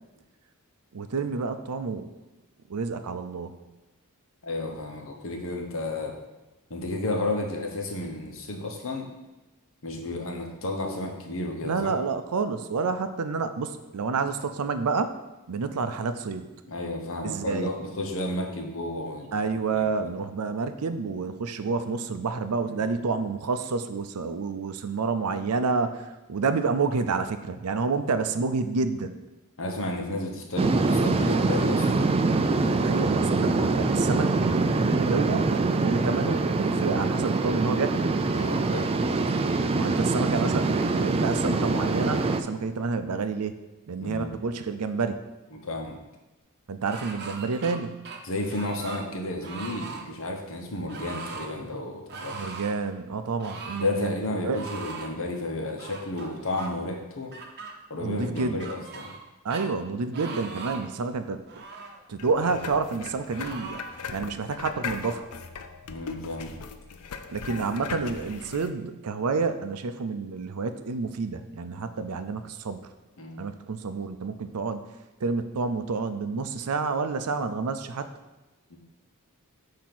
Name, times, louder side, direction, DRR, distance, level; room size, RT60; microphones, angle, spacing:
voice 1, 0.9-2.1 2.7-3.6 11.6-15.2 15.5-16.5 17.2-17.7 19.3-29.1 32.8-34.3 34.9-38.1 39.7-43.6 43.9-45.2 46.7-48.0 52.3-54.1 54.4-54.6 58.0-58.6 59.4-61.4 62.1-63.8 64.1-65.3 67.3-72.8 73.4-74.8 75.2-78.1, right 4 dB, 80° right, 10 dB, 0.5 m, -29 dB
voice 2, 4.4-6.1 6.7-9.1 9.8-12.0 16.6-19.3 19.7-19.9 22.6-22.9 29.6-32.1 38.3-39.0 44.0-44.3 45.5-46.0 48.2-52.4 53.8-57.3 57.9-59.1 65.9-66.5 73.2-73.5 78.7-78.8, left 2 dB, 65° left, 2 dB, 1.1 m, -32 dB
sound 1, 30.6-42.4, right 3 dB, 25° right, 0.3 m, -24 dB
sound 2, 46.9-47.8 48.0-49.1 49.4-50.0 50.9-51.5 52.1-52.8 53.4-53.9 54.5-55.1 55.8-56.7 57.3-57.7 58.4-59.2 59.5-59.7 60.1-60.9 61.5-62.0 62.6-62.8 63.4-63.9, right 4 dB, 50° right, 0.8 m, -40 dB
sound 3, 62.2-68.7, left 5 dB, 80° left, 0.5 m, -39 dB
8.4 x 2.8 x 6.0 m, 1.1 s
head